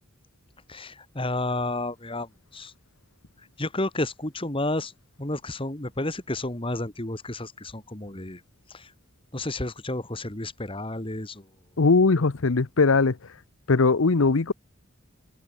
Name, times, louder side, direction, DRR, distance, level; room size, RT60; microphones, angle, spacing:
voice 1, 0.7-2.7 3.6-4.9 5.2-8.4 8.7-8.9 9.3-11.5, left 2 dB, 25° left, 2.4 m, -31 dB
voice 2, 11.8-13.2 13.7-14.5, left 4 dB, 75° left, 0.8 m, -20 dB
open air
head